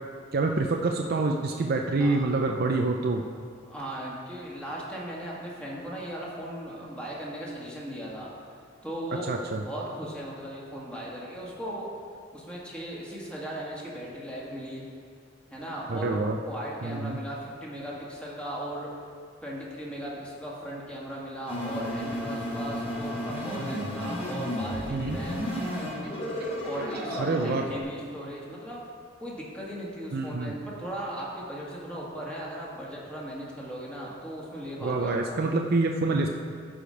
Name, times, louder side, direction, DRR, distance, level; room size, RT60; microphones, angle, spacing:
voice 1, 0.3-3.2 9.3-9.6 15.9-16.4 16.8-17.2 24.9-25.2 27.1-27.6 30.1-30.5 34.8-36.3, right 3 dB, 50° right, 2 dB, 0.5 m, -26 dB
voice 2, 3.7-8.3 8.8-9.3 9.7-11.9 12.3-14.9 15.5-16.2 16.5-18.9 19.4-25.5 26.6-28.8 29.2-35.5, right 1 dB, 5° left, -5 dB, 1.9 m, -37 dB
sound 1, 21.5-27.8, equal, 35° left, 2.9 m, -33 dB
13.5 x 5.1 x 5.2 m, 2.1 s
head